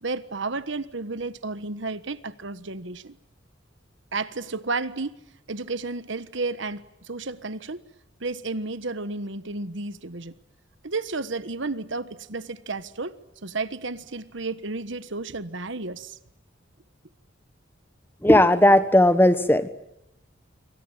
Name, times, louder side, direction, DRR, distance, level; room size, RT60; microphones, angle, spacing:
voice 1, 0.0-3.2 4.1-5.2 5.5-7.9 8.2-10.3 10.8-16.2, right 3 dB, 70° right, 1.3 m, -32 dB
voice 2, 18.2-19.7, left 1 dB, 10° left, 1.4 m, -16 dB
27.5 x 24.0 x 8.9 m
head